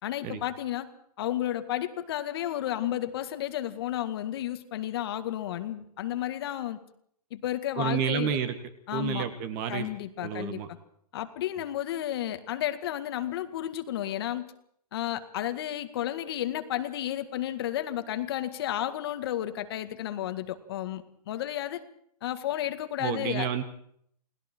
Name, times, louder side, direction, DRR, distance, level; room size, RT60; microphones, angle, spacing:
voice 1, 0.0-0.9 1.2-6.8 7.3-8.4 8.9-9.2 9.7-10.6 11.1-14.5 14.9-21.8 22.2-23.5, left 12 dB, 35° left, 9 dB, 2.0 m, -32 dB
voice 2, 7.8-8.6 8.9-9.9 10.2-10.7 23.0-23.6, right 8 dB, 25° right, 11 dB, 1.8 m, -30 dB
29.5 x 20.0 x 4.6 m, 0.67 s
hypercardioid pair, 160°, 21 cm